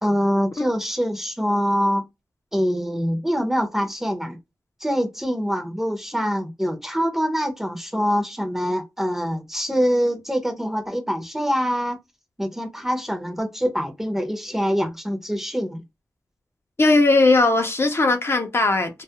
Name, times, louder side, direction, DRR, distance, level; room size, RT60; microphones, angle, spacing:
voice 1, 0.0-2.0 2.5-4.4 4.8-12.0 12.4-15.8, equal, 5° right, 0.6 m, -24 dB
voice 2, 16.8-19.0, left 2 dB, 40° left, 0.5 m, -18 dB
2.3 x 2.0 x 2.7 m
wide cardioid pair, 70°, 6 cm